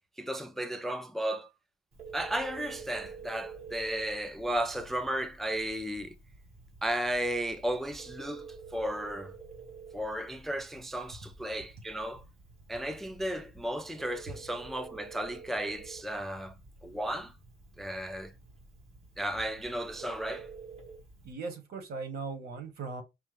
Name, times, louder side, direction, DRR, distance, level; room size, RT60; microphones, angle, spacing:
voice 1, 0.2-1.5 2.1-6.2 6.8-9.3 9.9-12.2 12.7-16.5 16.8-17.3 17.8-18.3 19.2-20.5, right 1 dB, ahead, 0.3 m, -34 dB
Telephone, 1.9-21.3, right 5 dB, 40° right, 2.1 m, -50 dB
voice 2, 21.2-23.0, right 4 dB, 65° right, 1.4 m, -38 dB
5.3 x 2.2 x 3.3 m
cardioid pair, 110°, 17 cm